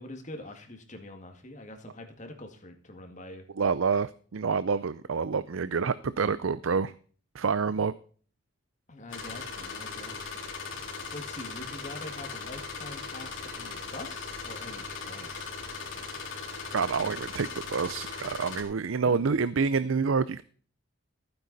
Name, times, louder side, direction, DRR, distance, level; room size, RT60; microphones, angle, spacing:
voice 1, 0.0-3.5 8.9-10.3 11.1-15.3 19.0-19.2, left 1 dB, 35° left, 4 dB, 2.0 m, -44 dB
voice 2, 3.6-6.9 7.3-7.9 16.7-20.4, right 5 dB, 80° right, 16 dB, 0.6 m, -27 dB
sound 1, 9.1-18.6, left 4 dB, 75° left, 3.9 m, -39 dB
15.5 x 9.8 x 4.1 m, 0.43 s
head